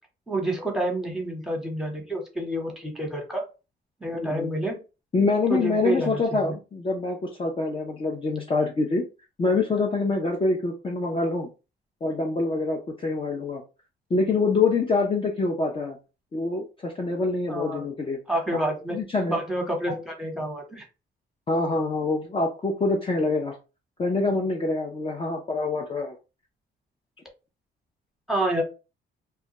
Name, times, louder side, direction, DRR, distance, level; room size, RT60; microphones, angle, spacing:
voice 1, 0.3-3.4 4.0-4.8 5.5-6.5 17.5-17.8 18.3-19.0 19.3-20.9 28.3-28.6, right 1 dB, ahead, 0 dB, 1.0 m, -28 dB
voice 2, 4.2-4.5 5.1-9.0 9.4-11.5 12.0-13.6 14.1-16.0 16.3-18.2 18.9-19.4 19.9-20.0 21.5-23.5 24.0-26.2, left 3 dB, 25° left, 0 dB, 0.5 m, -25 dB
2.3 x 2.2 x 2.9 m, 0.31 s
cardioid pair, 90°, 20 cm